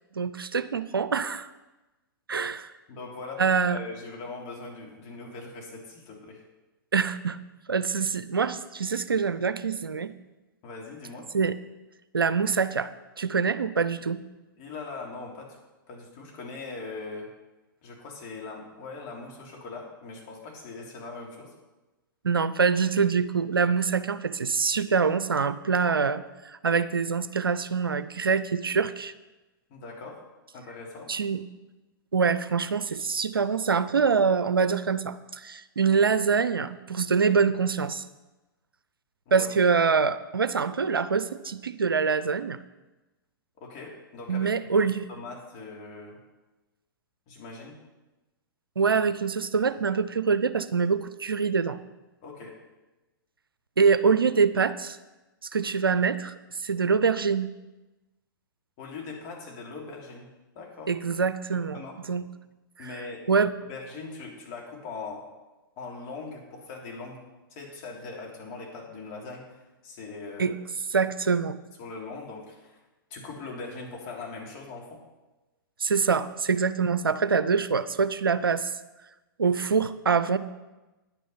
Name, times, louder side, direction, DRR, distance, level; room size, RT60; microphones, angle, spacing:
voice 1, 0.1-1.5 2.3-2.7 3.4-3.8 6.9-7.4 7.7-10.1 11.3-11.6 12.1-12.9 13.2-14.2 22.2-29.1 31.1-31.4 32.1-38.0 39.3-42.6 44.3-45.0 48.8-51.8 53.8-55.0 55.4-56.3 56.6-57.5 60.9-61.8 62.1-62.3 62.8-63.5 70.4-70.5 70.9-71.6 75.8-78.7 79.4-80.4, right 5 dB, 85° right, 14 dB, 0.6 m, -25 dB
voice 2, 2.9-6.4 10.6-11.2 14.6-15.6 15.9-17.3 17.8-21.5 29.7-30.2 30.5-31.1 39.3-39.5 43.6-46.2 47.3-47.7 52.2-52.5 58.8-60.9 61.7-62.0 62.8-63.2 63.6-65.2 65.8-67.2 67.5-70.5 71.8-72.8 73.1-75.0, left 3 dB, 40° left, -1 dB, 3.3 m, -41 dB
10.5 x 9.1 x 5.7 m, 1.1 s
figure-of-eight pair, 110°, 12 cm